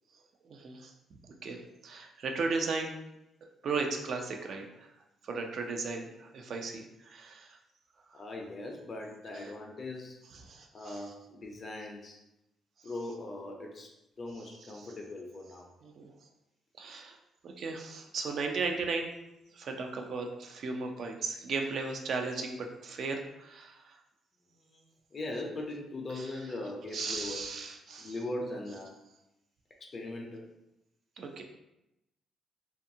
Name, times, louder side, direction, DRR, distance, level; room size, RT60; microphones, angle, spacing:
voice 1, 0.4-0.9 1.4-2.9 3.4-4.9 5.2-7.6 8.1-8.2 9.3-9.5 10.3-11.1 14.7-14.9 15.8-16.1 16.8-17.2 17.4-19.1 19.5-24.0 26.1-26.3 26.9-28.1 31.2-31.4, right 4 dB, 60° right, 3 dB, 0.4 m, -36 dB
voice 2, 8.1-10.2 10.7-12.2 12.8-13.9 14.2-15.7 24.7-24.8 25.1-27.5 28.0-28.9 29.8-30.5, left 2 dB, 45° left, 1 dB, 0.4 m, -40 dB
2.6 x 2.3 x 2.7 m, 0.90 s
cardioid pair, 90°, 0 cm